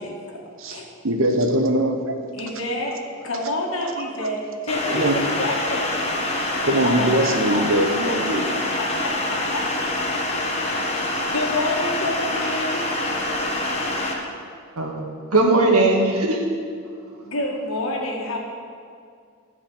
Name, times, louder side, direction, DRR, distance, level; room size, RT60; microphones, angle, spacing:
voice 1, 0.0-0.4 0.7-0.9 2.3-3.0 3.2-6.3 6.8-7.2 7.5-7.7 8.8-8.9 9.3-9.6 10.8-12.8 17.2-18.4, left 1 dB, 65° left, 0 dB, 1.9 m, -28 dB
voice 2, 0.6-2.2 4.9-5.2 6.6-8.6, right 1 dB, 60° right, 5 dB, 1.0 m, -22 dB
sound 1, 4.7-14.1, left 1 dB, 25° left, 1.3 m, -25 dB
voice 3, 15.3-16.4, right 2 dB, 85° right, 1 dB, 1.8 m, -18 dB
12.5 x 5.2 x 8.7 m, 2.2 s
head